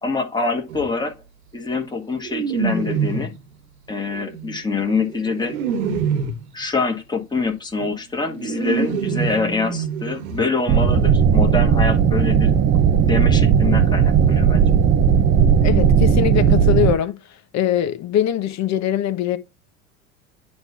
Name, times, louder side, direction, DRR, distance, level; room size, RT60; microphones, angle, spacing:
voice 1, 0.0-1.1 1.5-3.3 3.9-5.5 6.5-12.6 13.0-14.6, left 4 dB, 10° left, 1.8 m, -25 dB
sound 1, 0.7-0.9 2.2-3.4 4.1-6.5 7.8-7.9 8.2-10.4 10.7-10.8 11.1-11.2, right 6 dB, 75° right, 1.5 m, -26 dB
sound 2, 10.7-16.9, right 7 dB, 25° right, 0.8 m, -16 dB
voice 2, 15.6-17.2 17.5-19.4, left 10 dB, 40° left, 1.3 m, -22 dB
9.6 x 3.2 x 5.8 m
hypercardioid pair, 85°, 43 cm